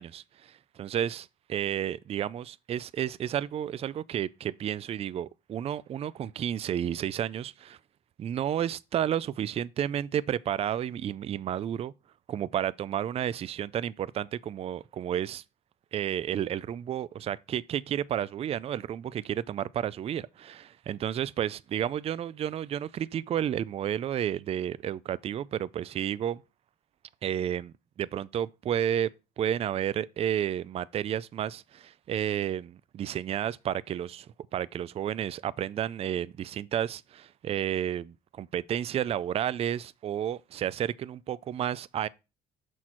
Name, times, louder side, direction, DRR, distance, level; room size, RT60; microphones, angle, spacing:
voice 1, 0.0-7.8 8.2-11.9 12.3-15.4 15.9-26.4 27.2-29.1 29.4-42.1, right 10 dB, 35° right, 0.3 m, -31 dB
6.3 x 4.2 x 4.4 m
cardioid pair, 110°, 17 cm